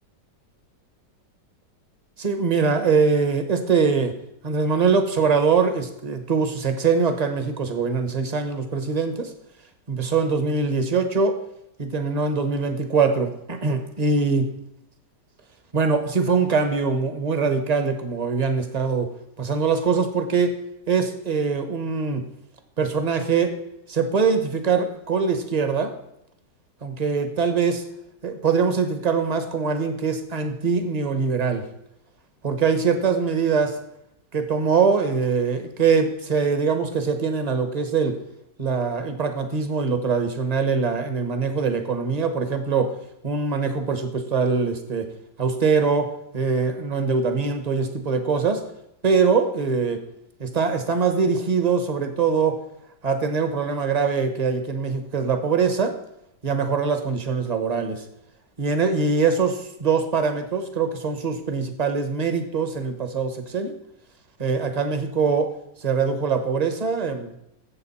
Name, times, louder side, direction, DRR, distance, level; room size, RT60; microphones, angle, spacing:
voice 1, 2.2-4.1 4.4-9.3 9.9-11.4 11.8-14.5 15.7-19.1 19.4-20.6 20.9-22.3 22.8-23.5 23.9-25.9 26.8-27.8 28.2-31.7 32.4-33.8 34.3-38.2 38.6-42.9 43.2-45.1 45.4-48.6 49.0-50.0 50.4-52.6 53.0-56.0 56.4-58.0 58.6-63.7 64.4-65.5 65.8-67.3, right 5 dB, 30° right, 8 dB, 0.9 m, -23 dB
12.5 x 7.9 x 4.2 m, 0.80 s
omnidirectional pair, 1.9 m